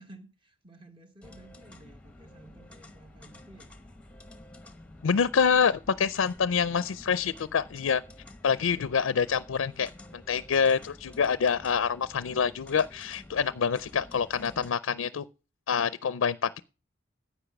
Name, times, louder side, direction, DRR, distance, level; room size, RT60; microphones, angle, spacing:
voice 1, 0.0-3.9, right 1 dB, 25° right, 1.4 m, -53 dB
sound 1, 1.2-14.7, left 1 dB, 5° left, 1.0 m, -50 dB
voice 2, 5.0-8.0 8.4-15.3 15.7-16.6, left 6 dB, 80° left, 0.4 m, -26 dB
10.0 x 8.6 x 5.9 m
head